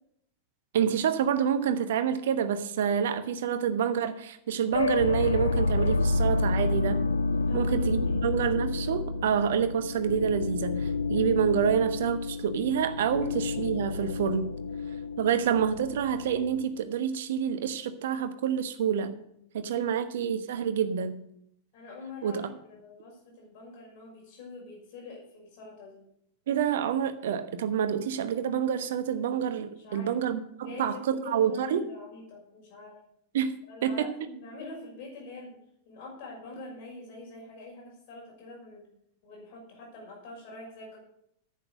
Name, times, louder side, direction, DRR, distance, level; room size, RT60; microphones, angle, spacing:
voice 1, 0.7-7.0 7.5-14.5 15.2-19.1 19.5-21.2 22.2-22.5 26.5-31.8 33.3-34.1, right 8 dB, 60° right, 10 dB, 1.1 m, -28 dB
sound 1, 4.7-16.6, left 3 dB, 70° left, 0.6 m, -29 dB
voice 2, 7.5-7.8 8.1-8.2 21.7-26.0 29.8-30.1 30.6-33.0 33.7-35.6 35.9-38.9 39.2-41.0, left 2 dB, 50° left, -1 dB, 5.8 m, -45 dB
10.5 x 8.5 x 6.6 m, 0.73 s
figure-of-eight pair, 90°, 0 cm